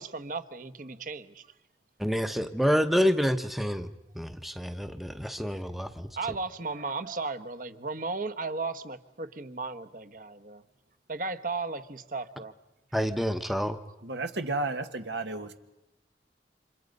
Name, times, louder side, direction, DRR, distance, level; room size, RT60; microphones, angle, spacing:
voice 1, 0.0-1.5 6.2-10.6 11.1-12.5, right 3 dB, 50° right, 11 dB, 1.1 m, -35 dB
voice 2, 2.0-3.9 4.1-6.1 12.9-13.8, equal, ahead, 9 dB, 0.8 m, -28 dB
voice 3, 14.0-15.5, right 2 dB, 80° right, 7 dB, 1.6 m, -32 dB
30.0 x 26.5 x 5.4 m, 0.97 s
head